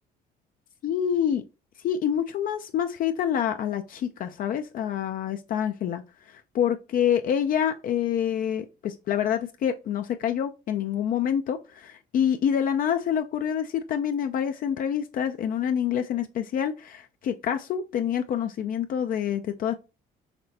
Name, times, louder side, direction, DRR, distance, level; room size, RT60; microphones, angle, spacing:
voice 1, 0.8-1.4 1.8-19.7, left 9 dB, 55° left, 0.5 m, -27 dB
5.8 x 3.2 x 2.8 m
cardioid pair, 110°, 17 cm